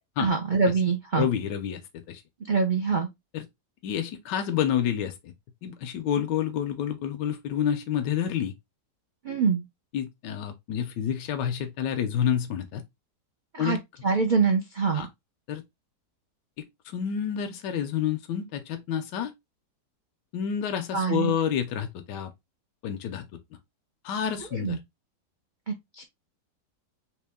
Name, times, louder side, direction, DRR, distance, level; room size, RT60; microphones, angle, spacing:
voice 1, 0.2-1.3 2.5-3.1 9.2-9.6 13.5-13.8 14.0-15.1 20.9-21.3 24.6-24.8 25.7-26.0, right 5 dB, 85° right, 0.4 m, -24 dB
voice 2, 1.2-2.2 3.3-3.5 3.8-5.3 5.6-8.5 9.9-12.8 13.6-13.8 14.9-15.1 15.5-15.6 16.6-19.3 20.3-22.3 22.8-23.2 24.0-24.8, left 9 dB, 85° left, 1.3 m, -29 dB
3.7 x 2.9 x 3.4 m
omnidirectional pair, 1.8 m